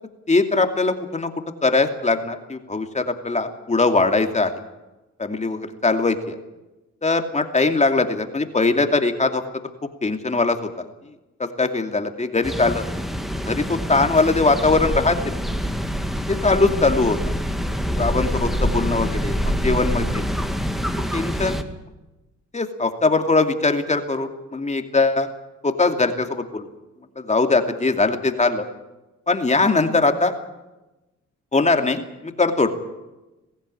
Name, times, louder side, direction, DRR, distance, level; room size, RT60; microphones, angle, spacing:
voice 1, 0.3-1.3 1.6-4.5 5.2-6.4 7.0-9.4 10.0-10.7 11.4-12.8 13.4-15.2 16.3-17.2 17.9-19.4 19.6-20.2 21.1-21.6 22.5-25.3 25.6-26.7 27.2-28.6 29.3-30.3 31.5-32.7, left 3 dB, 25° left, 6 dB, 2.6 m, -21 dB
sound 1, 12.4-21.6, equal, ahead, 2.2 m, -25 dB
22.0 x 16.0 x 9.8 m, 1.0 s
cardioid pair, 90°, 30 cm